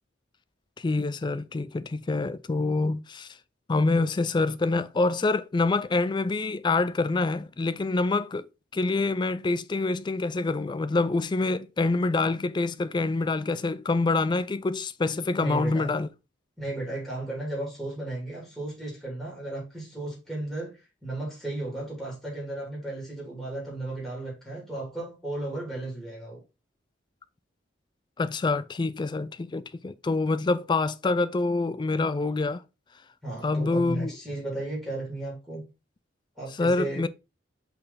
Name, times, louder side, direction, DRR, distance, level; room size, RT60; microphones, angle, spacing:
voice 1, 0.8-3.4 3.7-8.4 8.7-16.1 28.2-32.6 33.4-34.1 36.6-37.1, left 3 dB, 25° left, 0.3 m, -26 dB
voice 2, 15.4-15.9 16.6-20.7 21.0-26.4 33.2-35.6 36.4-37.0, right 2 dB, ahead, 3.0 m, -34 dB
5.4 x 4.3 x 4.0 m
head